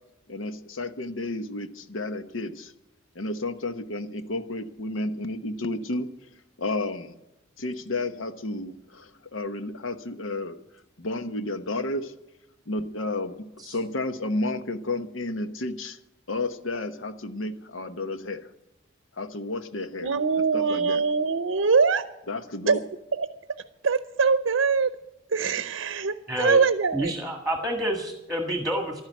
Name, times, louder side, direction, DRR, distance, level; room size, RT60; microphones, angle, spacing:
voice 1, 0.3-2.7 3.1-6.1 6.6-7.2 7.6-10.6 11.0-12.1 12.7-16.0 16.3-18.5 19.2-20.1 20.5-21.0 22.3-22.8, left 2 dB, 75° left, 10 dB, 1.0 m, -31 dB
voice 2, 20.0-22.0 22.7-22.8 23.2-23.3 23.8-24.9 25.3-27.1, right 5 dB, 80° right, 11 dB, 0.7 m, -23 dB
voice 3, 26.3-26.6 26.9-29.0, right 1 dB, ahead, 3 dB, 1.6 m, -28 dB
12.0 x 10.5 x 9.3 m, 0.90 s
head